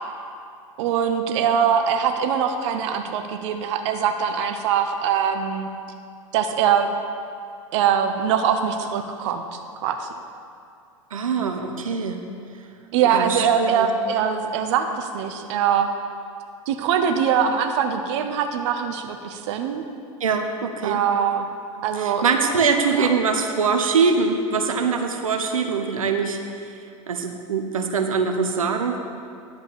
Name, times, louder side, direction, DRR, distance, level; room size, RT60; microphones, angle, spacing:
voice 1, 0.8-5.7 6.3-6.9 7.7-10.1 12.9-15.9 16.7-19.8 20.8-21.5 21.8-22.3 22.9-23.1, right 7 dB, 60° right, 6 dB, 0.8 m, -22 dB
voice 2, 11.1-12.2 13.1-13.9 20.2-21.0 21.9-26.4 27.1-29.0, right 5 dB, 85° right, 5 dB, 0.9 m, -23 dB
11.0 x 5.7 x 6.8 m, 2.4 s
hypercardioid pair, 95°, 17 cm